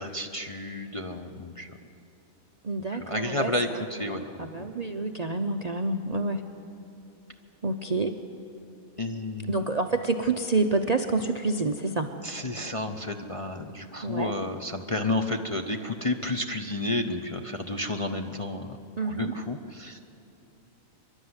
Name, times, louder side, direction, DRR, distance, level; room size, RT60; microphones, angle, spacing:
voice 1, 0.0-1.8 2.9-4.7 9.0-9.6 12.2-20.0, left 2 dB, 30° left, 3 dB, 0.6 m, -31 dB
voice 2, 2.6-3.5 4.1-6.4 7.6-8.2 9.5-12.1 14.0-14.3 19.0-19.3, right 3 dB, 40° right, 6 dB, 0.6 m, -28 dB
24.0 x 12.0 x 9.6 m, 2.8 s
omnidirectional pair, 1.4 m